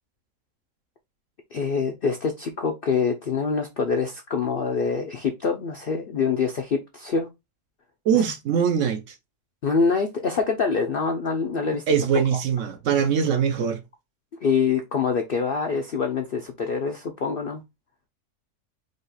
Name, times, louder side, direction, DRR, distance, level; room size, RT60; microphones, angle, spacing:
voice 1, 1.5-7.3 8.1-8.2 9.6-11.8 12.3-12.4 14.4-17.6, left 5 dB, 65° left, 0.5 m, -25 dB
voice 2, 8.0-9.2 11.9-13.8, right 7 dB, 65° right, 0.9 m, -22 dB
5.0 x 2.4 x 4.0 m
omnidirectional pair, 1.6 m